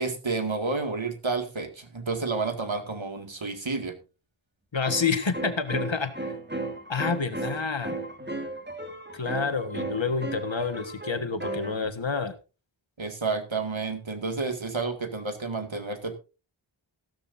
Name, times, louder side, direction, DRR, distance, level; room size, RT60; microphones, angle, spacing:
voice 1, 0.0-4.0 13.0-16.2, right 4 dB, 65° right, 7 dB, 2.2 m, -30 dB
sound 1, 3.8-3.9 4.8-11.9, right 2 dB, 20° right, 2.2 m, -35 dB
voice 2, 4.7-6.3 6.9-8.0 9.1-12.3, left 5 dB, 60° left, 9 dB, 1.6 m, -28 dB
15.0 x 13.0 x 2.7 m, 0.31 s
wide cardioid pair, 45°, 50 cm